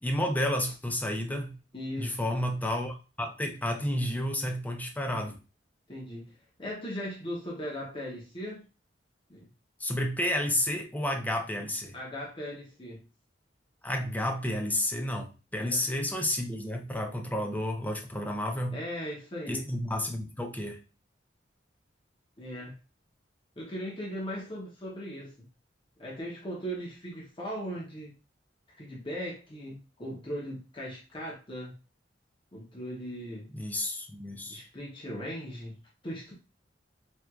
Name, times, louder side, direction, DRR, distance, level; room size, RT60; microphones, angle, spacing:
voice 1, 0.0-1.5 2.0-5.4 9.8-12.0 13.8-18.8 19.5-20.8 33.5-34.6, left 1 dB, 10° left, 3 dB, 0.5 m, -31 dB
voice 2, 1.7-2.3 5.9-6.3 6.6-8.6 9.3-9.5 11.9-13.0 15.5-15.9 18.7-19.7 22.4-22.8 23.6-25.3 26.0-28.1 28.8-31.7 32.5-33.5 34.5-35.8 36.0-36.3, equal, 30° left, -4 dB, 0.8 m, -38 dB
4.4 x 2.5 x 2.3 m, 0.32 s
head